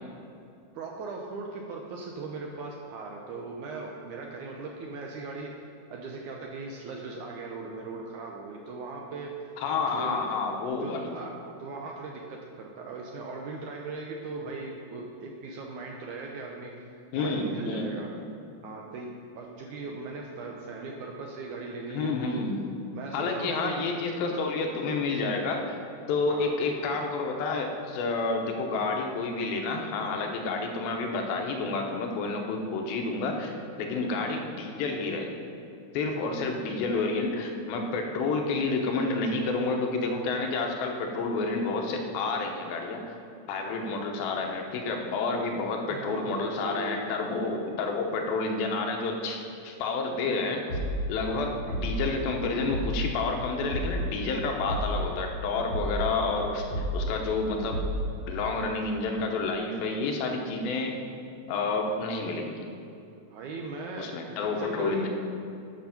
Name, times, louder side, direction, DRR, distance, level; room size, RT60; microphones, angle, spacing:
voice 1, 0.7-5.5 5.9-10.2 10.6-16.7 17.2-18.1 18.6-19.1 19.4-22.5 22.9-23.9 26.3-26.6 33.9-34.1 43.6-44.0 45.9-47.0 51.3-51.5 63.3-65.1, right 3 dB, 75° right, 0 dB, 1.8 m, -39 dB
voice 2, 9.6-11.0 17.1-18.1 21.9-22.6 23.1-25.8 26.1-35.3 35.9-43.0 43.5-49.4 49.6-50.6 51.1-56.7 56.9-57.8 58.3-60.9 61.5-62.7 64.0-65.1, left 3 dB, 85° left, 2 dB, 2.8 m, -29 dB
sound 1, 50.7-51.1 51.7-52.1 52.7-53.1 53.7-54.1 54.7-55.1 55.7-56.1 56.7-57.1 57.7-58.1, equal, 50° left, 1.4 m, -30 dB
9.9 x 6.3 x 5.8 m, 2.6 s
omnidirectional pair, 4.2 m